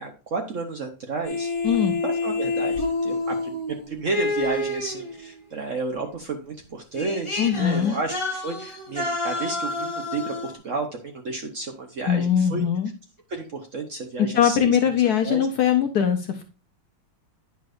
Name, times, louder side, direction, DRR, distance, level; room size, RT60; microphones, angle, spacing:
voice 1, 0.0-1.5 2.0-12.6 13.3-15.5, right 3 dB, 50° right, 4 dB, 1.0 m, -32 dB
sound 1, 1.2-5.4 6.5-6.6 6.9-10.5, left 2 dB, 20° left, 0.9 m, -28 dB
voice 2, 7.4-8.0 12.1-12.9 14.2-16.4, left 9 dB, 65° left, 6 dB, 1.0 m, -21 dB
9.4 x 6.3 x 2.5 m, 0.33 s
omnidirectional pair, 2.2 m